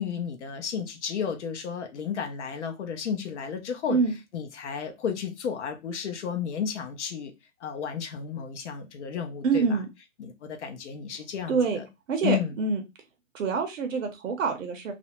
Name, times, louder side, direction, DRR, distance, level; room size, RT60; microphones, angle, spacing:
voice 1, 0.0-4.0 4.3-7.3 7.6-9.8 10.2-11.9 12.2-12.6, left 7 dB, 60° left, 0.7 m, -32 dB
voice 2, 9.4-9.9 11.5-11.8 12.1-12.8 13.3-14.9, right 5 dB, 70° right, 0.7 m, -26 dB
2.5 x 2.1 x 2.8 m
hypercardioid pair, 175°, 40 cm